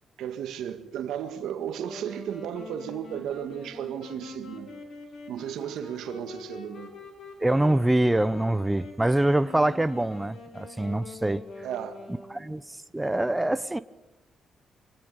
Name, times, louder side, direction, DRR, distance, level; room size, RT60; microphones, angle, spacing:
voice 1, 0.2-4.7 5.3-6.9 11.6-12.0, right 9 dB, 85° right, 1.9 m, -34 dB
Wind instrument woodwind instrument, 1.8-12.7, left 4 dB, 70° left, 5.2 m, -44 dB
voice 2, 7.4-11.4 12.3-13.8, right 1 dB, 10° right, 0.8 m, -25 dB
24.5 x 19.5 x 8.3 m
cardioid pair, 75°, 0 cm